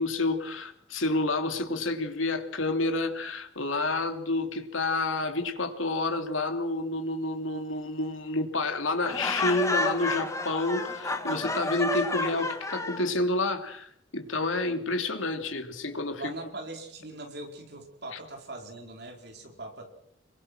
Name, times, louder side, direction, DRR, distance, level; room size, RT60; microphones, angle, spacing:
voice 1, 0.0-16.3, left 2 dB, 85° left, 2.9 m, -29 dB
Laughter, 9.0-13.1, left 2 dB, 15° left, 1.7 m, -30 dB
voice 2, 16.2-19.9, right 2 dB, 55° right, 4.6 m, -41 dB
26.5 x 22.5 x 6.1 m
head